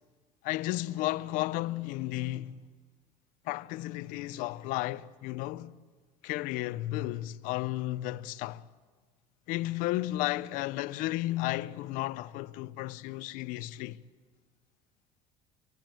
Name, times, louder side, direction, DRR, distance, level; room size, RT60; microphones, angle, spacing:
voice 1, 0.4-2.6 3.5-5.7 6.2-8.6 9.5-14.0, left 17 dB, 75° left, 0.7 m, -33 dB
25.5 x 18.0 x 9.0 m
cardioid pair, 145°, 14 cm